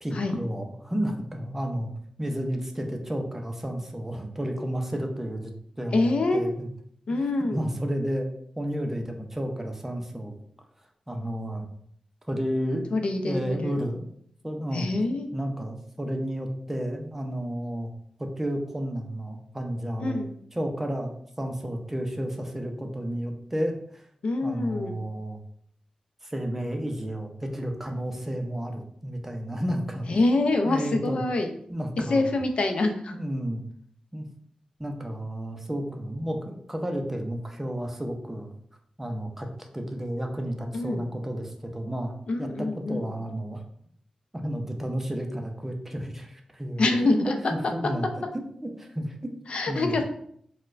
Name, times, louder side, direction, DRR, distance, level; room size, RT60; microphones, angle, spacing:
voice 1, 0.0-1.9 2.2-5.5 5.8-6.7 7.5-8.3 8.6-10.3 11.1-11.6 12.3-13.0 13.2-14.1 14.4-14.9 15.3-17.9 18.2-20.2 20.5-24.0 24.4-25.4 26.2-30.1 30.6-31.2 31.7-32.2 33.1-33.6 34.1-34.3 34.8-38.5 39.0-39.5 39.7-43.6 44.4-47.3 47.8-48.2 48.6-49.4 49.7-50.0, equal, 15° right, 3 dB, 0.5 m, -31 dB
voice 2, 5.9-6.5 7.1-7.6 12.9-13.9 14.7-15.3 20.0-20.3 24.2-25.0 30.1-31.5 32.0-33.1 40.7-41.0 42.3-43.1 46.8-47.3 47.8-47.9 49.5-50.0, left 2 dB, 65° left, 5 dB, 0.4 m, -25 dB
4.3 x 2.2 x 2.4 m, 0.65 s
wide cardioid pair, 80°, 2 cm